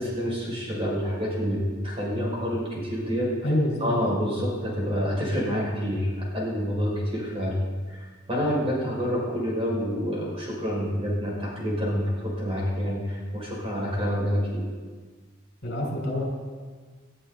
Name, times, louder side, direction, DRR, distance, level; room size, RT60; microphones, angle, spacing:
voice 1, 0.0-3.4 3.8-7.6 7.9-14.6, equal, 30° right, -4 dB, 5.9 m, -28 dB
voice 2, 3.4-3.9 15.6-16.3, left 1 dB, 55° left, -1 dB, 5.5 m, -26 dB
20.5 x 13.0 x 4.1 m, 1.5 s
head